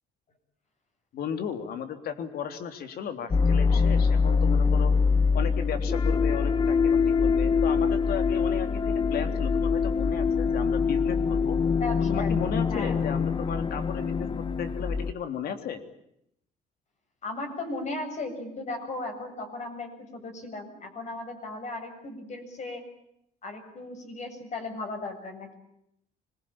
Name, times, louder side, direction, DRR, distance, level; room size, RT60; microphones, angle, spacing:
voice 1, 1.1-4.9 5.3-11.6 12.1-15.8, left 7 dB, 65° left, 8 dB, 3.4 m, -35 dB
sound 1, 3.3-15.1, left 5 dB, 30° left, 1.0 m, -24 dB
voice 2, 11.7-12.4 12.7-13.0 17.2-22.8 23.4-25.5, left 2 dB, 45° left, 5 dB, 7.6 m, -36 dB
25.5 x 22.0 x 8.9 m, 0.77 s
cardioid pair, 110°, 17 cm